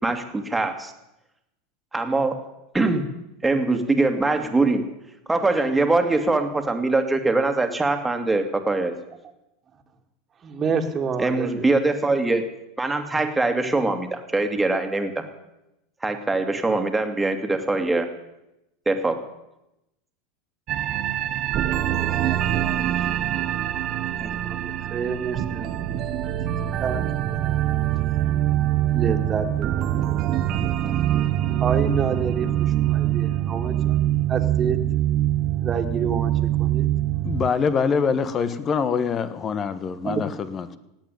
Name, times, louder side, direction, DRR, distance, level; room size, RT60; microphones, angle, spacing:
voice 1, 0.0-0.9 1.9-2.4 2.7-3.0 3.4-4.9 5.3-8.9 11.2-12.4 12.8-15.3 16.0-18.1 18.9-19.2, right 2 dB, 10° right, 2.4 m, -22 dB
voice 2, 10.4-11.7 22.0-22.1 22.6-22.8 24.2-26.0 26.8-27.0 28.9-29.7 31.6-32.5 32.8-34.0 34.3-34.8 35.5-36.3 36.6-36.9 40.0-40.2, right 5 dB, 30° right, 2.3 m, -28 dB
sound 1, 20.7-37.5, right 12 dB, 45° right, 1.2 m, -24 dB
voice 3, 37.2-40.8, left 6 dB, 35° left, 1.4 m, -24 dB
18.0 x 8.6 x 9.3 m
hypercardioid pair, 100°, 0 cm